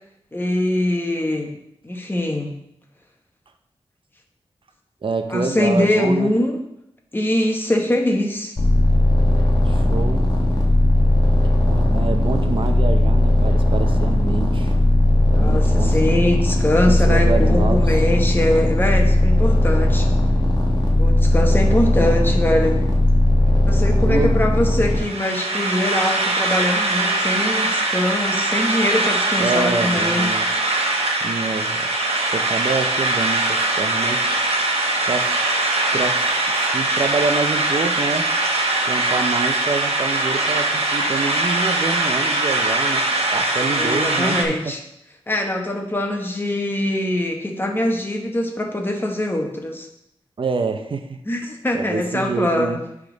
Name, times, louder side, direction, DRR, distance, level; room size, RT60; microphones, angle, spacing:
voice 1, 0.3-1.6 1.8-2.5 5.3-6.6 7.1-8.5 15.3-20.1 21.0-22.8 23.7-30.3 43.7-44.8 45.3-49.9 51.2-52.8, left 1 dB, 20° left, 2 dB, 1.2 m, -22 dB
voice 2, 5.0-6.3 9.6-10.2 11.2-14.7 15.3-16.3 16.8-17.8 21.5-22.2 24.1-24.4 29.4-30.5 31.2-31.9 32.3-34.2 35.0-38.3 38.8-43.0 43.3-44.7 50.4-51.2 51.7-52.8, right 4 dB, 60° right, 7 dB, 0.7 m, -27 dB
sound 1, 8.6-25.0, left 1 dB, 40° left, 1.4 m, -17 dB
sound 2, 24.9-44.4, right 2 dB, 80° right, 1.0 m, -21 dB
9.9 x 3.7 x 3.9 m, 0.81 s
wide cardioid pair, 90°, 10 cm